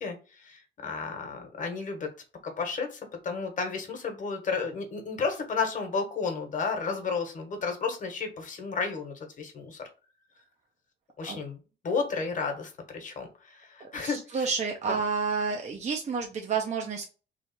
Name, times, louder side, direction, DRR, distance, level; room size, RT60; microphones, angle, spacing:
voice 1, 0.0-2.1 2.4-9.8 11.2-11.6 11.8-14.5, left 4 dB, 40° left, 4 dB, 1.3 m, -32 dB
voice 2, 14.0-17.1, right 5 dB, 35° right, 2 dB, 0.7 m, -30 dB
3.2 x 2.4 x 4.2 m, 0.34 s
cardioid pair, 85°, 19 cm